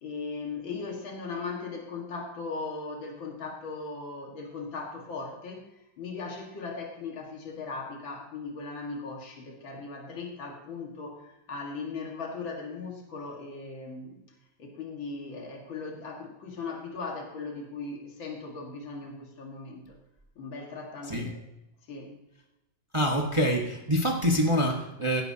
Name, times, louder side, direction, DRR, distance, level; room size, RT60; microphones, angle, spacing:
voice 1, 0.0-14.2 14.6-20.0 20.4-21.4 21.8-22.1, left 4 dB, 85° left, 0 dB, 2.6 m, -38 dB
voice 2, 22.9-25.2, equal, 20° right, 1 dB, 1.1 m, -25 dB
17.0 x 10.5 x 2.8 m, 0.93 s
omnidirectional pair, 2.1 m